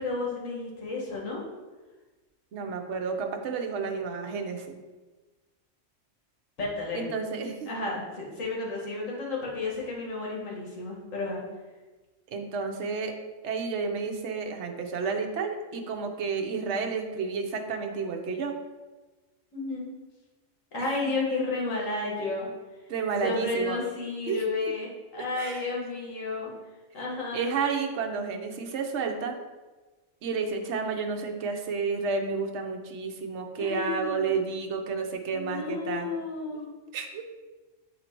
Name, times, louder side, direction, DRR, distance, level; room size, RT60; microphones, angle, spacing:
voice 1, 0.0-1.4 6.6-7.0 7.7-11.4 19.5-19.9 20.7-22.5 23.2-26.5 26.9-27.5 33.6-34.4 35.3-36.7, left 3 dB, 80° left, -3 dB, 1.7 m, -32 dB
voice 2, 2.5-4.8 6.9-7.7 12.3-13.1 13.4-18.5 20.8-20.9 22.9-23.8 24.3-24.4 25.4-25.6 27.3-29.4 30.2-36.1 36.9-37.2, right 5 dB, 65° right, 4 dB, 1.0 m, -31 dB
8.1 x 2.8 x 4.4 m, 1.2 s
omnidirectional pair, 1.3 m